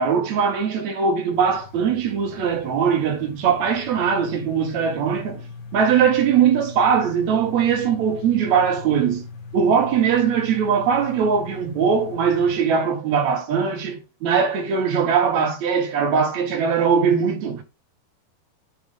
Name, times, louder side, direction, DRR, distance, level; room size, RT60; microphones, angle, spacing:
voice 1, 0.0-5.4 5.7-9.2 9.5-17.6, right 7 dB, 60° right, 2.0 m, -20 dB
sound 1, 1.3-12.6, left 4 dB, 75° left, 3.6 m, -40 dB
7.7 x 3.4 x 5.0 m
omnidirectional pair, 4.6 m